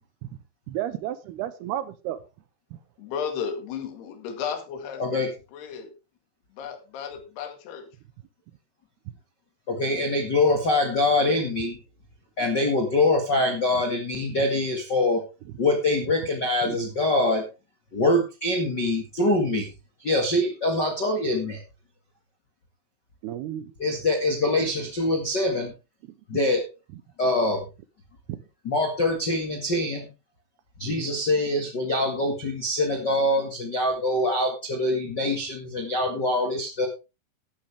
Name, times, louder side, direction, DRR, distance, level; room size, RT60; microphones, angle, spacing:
voice 1, 0.7-2.2 16.7-16.8 23.2-23.7 28.3-28.4 30.8-31.0, right 12 dB, 75° right, 2.7 m, -32 dB
voice 2, 3.0-5.9 6.5-7.9 10.5-11.0, left 7 dB, 70° left, 4.0 m, -35 dB
voice 3, 5.0-5.3 9.7-11.8 12.4-15.2 15.6-17.4 17.9-19.7 20.0-21.6 23.8-25.7 26.3-26.7 27.2-27.6 28.6-30.1 30.8-36.9, left 2 dB, 45° left, 1.4 m, -24 dB
12.5 x 11.5 x 3.5 m
omnidirectional pair, 4.9 m